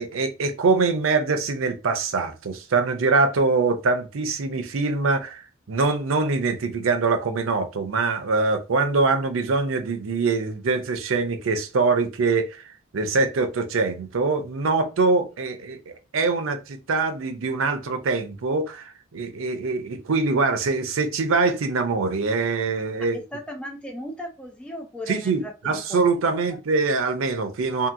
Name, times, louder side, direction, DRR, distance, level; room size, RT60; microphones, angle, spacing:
voice 1, 0.0-5.4 5.7-12.6 12.9-23.2 25.1-27.9, right 4 dB, 85° right, 0.5 m, -23 dB
voice 2, 23.3-25.8, equal, 5° left, 0.5 m, -36 dB
2.8 x 2.6 x 2.5 m
head